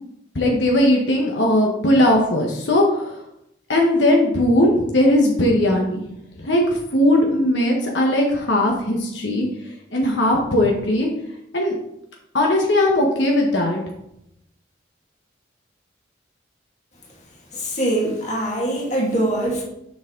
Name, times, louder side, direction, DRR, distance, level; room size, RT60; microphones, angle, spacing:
voice 1, 0.3-3.2 3.7-6.0 6.4-9.5 9.9-11.1 11.5-11.7 12.3-13.8, left 1 dB, 80° left, 0 dB, 1.3 m, -18 dB
voice 2, 17.5-19.6, right 1 dB, 40° left, -2 dB, 2.1 m, -23 dB
7.2 x 6.0 x 3.8 m, 0.79 s
head